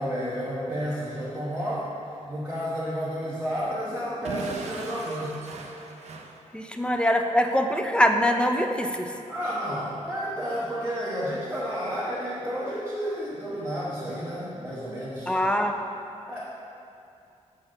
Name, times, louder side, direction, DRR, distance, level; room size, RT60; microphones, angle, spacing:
voice 1, 0.0-5.4 9.3-15.4 16.3-16.4, equal, 15° right, -9 dB, 1.1 m, -31 dB
Explosion / Shatter, 4.2-7.0, right 3 dB, 60° right, 0.6 m, -39 dB
voice 2, 6.5-9.1 15.3-15.7, equal, 10° left, 4 dB, 0.4 m, -23 dB
5.8 x 4.5 x 6.3 m, 2.6 s
wide cardioid pair, 135°, 13 cm